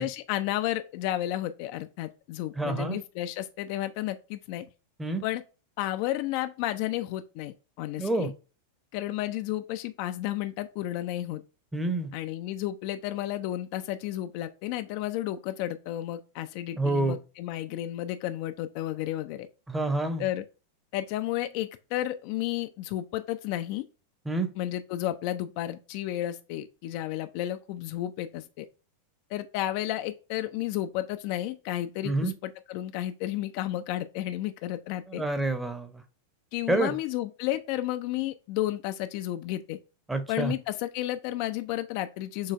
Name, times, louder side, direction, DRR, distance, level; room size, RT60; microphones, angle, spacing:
voice 1, 0.0-4.6 5.2-5.4 5.8-8.3 8.9-11.4 12.1-19.5 20.2-20.4 20.9-23.9 24.6-28.7 29.3-35.2 36.5-39.8 40.3-42.5, left 14 dB, 45° left, 0.3 m, -32 dB
voice 2, 2.6-3.0 5.0-5.2 8.0-8.3 11.7-12.1 16.8-17.2 19.7-20.2 24.3-24.5 32.0-32.3 35.1-36.0 36.7-37.0 40.1-40.5, right 2 dB, 5° right, 0.8 m, -28 dB
6.6 x 3.1 x 2.5 m
figure-of-eight pair, 90°, 0 cm